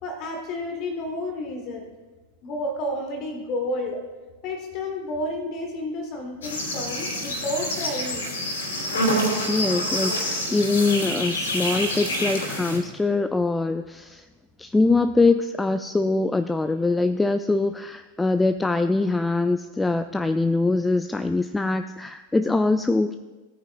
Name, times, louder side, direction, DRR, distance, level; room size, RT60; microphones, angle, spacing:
voice 1, 0.0-1.9 2.4-4.0 4.4-8.3, left 1 dB, 40° left, 3 dB, 1.4 m, -31 dB
sound 1, 6.4-12.8, equal, 65° left, 3.0 m, -27 dB
voice 2, 9.5-14.2 14.6-23.2, left 3 dB, 10° left, 9 dB, 0.3 m, -23 dB
17.0 x 9.1 x 2.5 m, 1.2 s
figure-of-eight pair, 90°, 0 cm